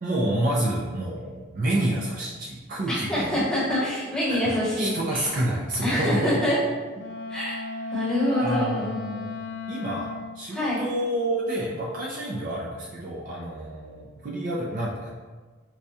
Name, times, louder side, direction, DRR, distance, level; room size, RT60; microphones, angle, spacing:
voice 1, 0.0-3.3 4.3-6.4 8.4-9.4 9.7-15.1, right 1 dB, 40° right, -3 dB, 0.4 m, -29 dB
voice 2, 2.9-5.3 5.8-6.6 7.3-7.6 7.9-8.9 10.5-10.8, left 1 dB, 5° left, -9 dB, 0.9 m, -25 dB
Wind instrument woodwind instrument, 7.0-10.4, left 3 dB, 65° left, 0.3 m, -35 dB
4.7 x 2.2 x 2.7 m, 1.4 s
head